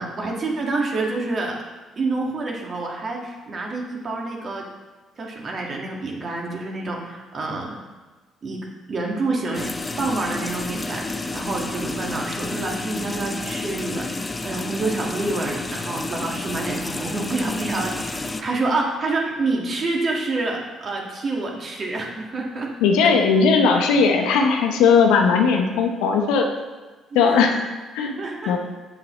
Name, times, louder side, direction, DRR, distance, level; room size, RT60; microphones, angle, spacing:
voice 1, 0.0-1.6 2.0-4.6 5.2-7.8 8.4-8.6 8.9-9.7 10.0-22.7 27.2-27.5 28.2-28.6, right 3 dB, 45° right, 0 dB, 1.7 m, -27 dB
sound 1, 9.5-18.4, left 2 dB, 25° left, 0.5 m, -30 dB
voice 2, 22.8-26.5 27.1-27.6 27.9-28.6, left 5 dB, 80° left, 3 dB, 0.8 m, -18 dB
7.6 x 6.8 x 3.1 m, 1.3 s
hypercardioid pair, 55°, 0 cm